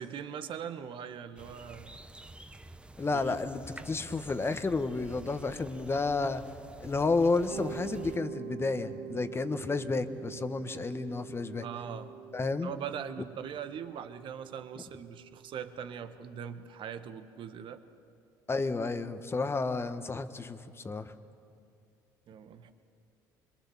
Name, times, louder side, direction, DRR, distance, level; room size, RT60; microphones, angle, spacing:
voice 1, 0.0-2.0 3.1-3.4 11.6-12.1 12.6-17.8 22.3-22.7, right 8 dB, 55° right, 9 dB, 1.4 m, -41 dB
sound 1, 1.4-8.2, right 2 dB, 10° right, 0.9 m, -49 dB
voice 2, 3.0-6.4 6.8-11.7 12.3-12.7 18.5-21.1, left 3 dB, 25° left, 10 dB, 1.4 m, -31 dB
Mallet percussion, 7.5-16.3, right 9 dB, 75° right, 0.9 m, -45 dB
25.0 x 22.5 x 7.3 m, 2.6 s
hypercardioid pair, 65°, 10 cm